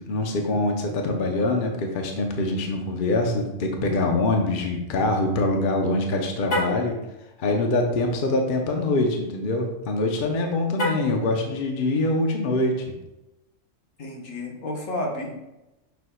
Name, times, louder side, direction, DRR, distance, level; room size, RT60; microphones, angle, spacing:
voice 1, 0.1-7.0 7.4-12.8, left 2 dB, 45° left, 2 dB, 0.9 m, -24 dB
Car, 6.4-6.9 10.7-11.2, left 1 dB, 60° left, 1.8 m, -27 dB
voice 2, 14.0-15.4, left 1 dB, 80° left, 0 dB, 1.6 m, -31 dB
7.0 x 6.4 x 2.3 m, 0.96 s
omnidirectional pair, 1.3 m